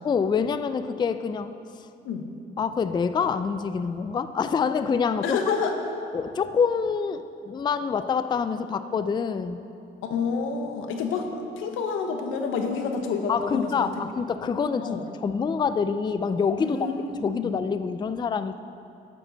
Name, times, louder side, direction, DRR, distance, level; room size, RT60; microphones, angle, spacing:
voice 1, 0.0-1.6 2.6-5.4 6.1-9.7 13.3-16.9 17.2-18.6, left 6 dB, 20° left, 12 dB, 0.3 m, -26 dB
voice 2, 5.2-5.7 10.0-13.9 14.8-15.0 16.6-17.6, left 5 dB, 90° left, 5 dB, 1.0 m, -28 dB
10.5 x 9.1 x 4.0 m, 2.7 s
cardioid pair, 90°, 20 cm